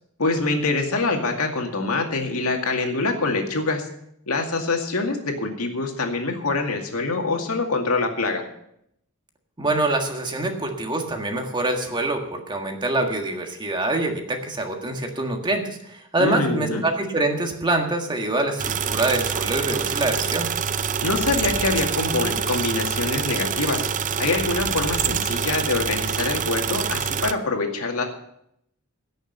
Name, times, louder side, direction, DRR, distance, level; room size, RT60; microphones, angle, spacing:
voice 1, 0.2-3.9 4.3-8.4 16.2-16.8 21.0-23.8 24.2-28.1, left 3 dB, 90° left, 3 dB, 2.2 m, -25 dB
voice 2, 9.6-20.5, right 2 dB, 20° right, 3 dB, 1.7 m, -25 dB
sound 1, 18.6-27.3, right 7 dB, 35° right, 0.6 m, -26 dB
16.5 x 6.6 x 6.7 m, 0.75 s
head